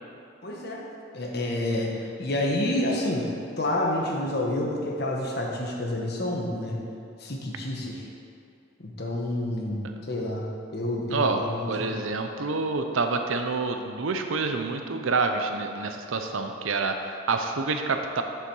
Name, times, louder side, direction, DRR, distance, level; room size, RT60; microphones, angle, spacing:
voice 1, 0.4-0.9 1.1-6.8 7.2-8.1 8.8-10.5 10.7-12.0, left 1 dB, 50° left, -1 dB, 1.1 m, -29 dB
voice 2, 11.7-18.2, right 4 dB, 80° right, 5 dB, 0.6 m, -27 dB
6.9 x 6.9 x 4.7 m, 2.5 s
head